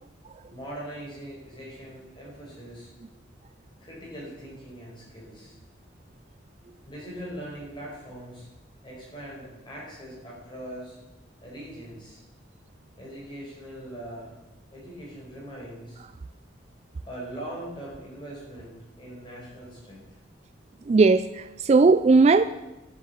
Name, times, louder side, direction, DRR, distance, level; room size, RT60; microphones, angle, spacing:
voice 1, 0.5-2.9 3.8-5.6 6.9-8.5 8.8-11.0 11.4-12.2 13.0-14.4 14.7-16.0 17.0-20.0, right 1 dB, 25° left, -4 dB, 5.1 m, -41 dB
voice 2, 20.9-22.4, right 4 dB, 35° right, 13 dB, 0.3 m, -18 dB
10.5 x 7.8 x 8.1 m, 1.0 s
head